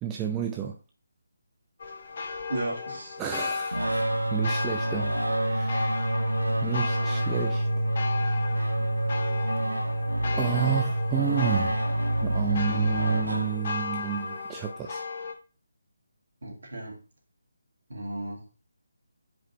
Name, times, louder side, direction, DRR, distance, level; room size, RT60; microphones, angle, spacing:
voice 1, 0.0-0.8 3.2-4.0 4.3-6.0 6.6-7.7 8.5-8.8 10.3-11.8 12.2-15.0, right 9 dB, 15° right, 1 dB, 0.5 m, -31 dB
sound 1, 1.8-15.3, left 4 dB, 45° left, 1.1 m, -35 dB
voice 2, 2.5-3.2 16.4-17.0 17.9-18.5, right 1 dB, 65° right, -1 dB, 2.5 m, -34 dB
sound 2, 3.7-14.0, right 1 dB, 90° right, 1.1 m, -27 dB
5.1 x 3.9 x 5.3 m, 0.35 s
figure-of-eight pair, 150°, 0 cm